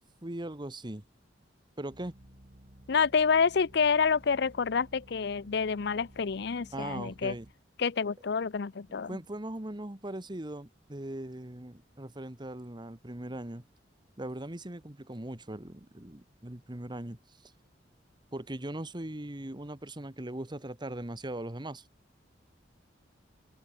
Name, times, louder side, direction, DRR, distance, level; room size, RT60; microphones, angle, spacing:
voice 1, 0.2-1.0 1.8-2.1 6.7-7.5 9.1-13.6 14.2-17.5 18.3-21.9, right 1 dB, 25° right, 1.5 m, -40 dB
sound 1, 1.9-7.5, equal, 45° right, 4.1 m, -55 dB
voice 2, 2.9-7.3 7.8-9.2, left 5 dB, 65° left, 0.6 m, -28 dB
open air
head